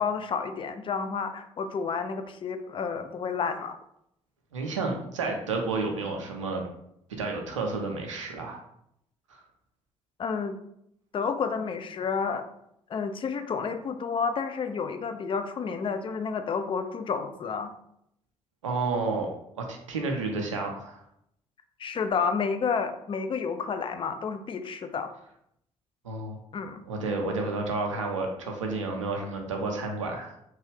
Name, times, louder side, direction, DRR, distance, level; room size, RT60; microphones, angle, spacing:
voice 1, 0.0-3.8 10.2-10.6 11.1-12.5 12.9-17.7 21.8-25.1 26.5-26.8, left 5 dB, 35° left, 8 dB, 0.4 m, -30 dB
voice 2, 4.5-6.6 7.1-8.6 9.3-9.4 18.6-19.3 19.5-21.0 26.0-26.4 26.9-30.3, right 3 dB, 85° right, 2 dB, 0.5 m, -31 dB
2.9 x 2.3 x 3.2 m, 0.76 s
figure-of-eight pair, 45°, 16 cm